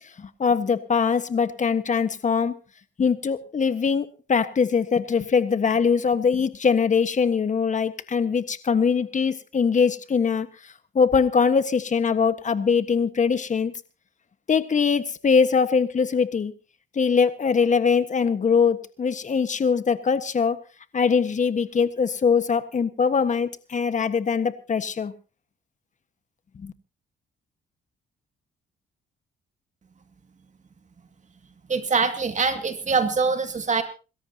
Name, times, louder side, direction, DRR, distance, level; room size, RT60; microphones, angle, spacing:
voice 1, 0.2-2.5 3.0-10.5 10.9-13.7 14.5-16.5 16.9-20.6 20.9-25.1 26.6-26.7, left 6 dB, 40° left, 11 dB, 1.4 m, -22 dB
voice 2, 31.7-33.8, right 4 dB, 35° right, 7 dB, 2.2 m, -23 dB
27.5 x 13.5 x 2.8 m, 0.33 s
cardioid pair, 90°, 20 cm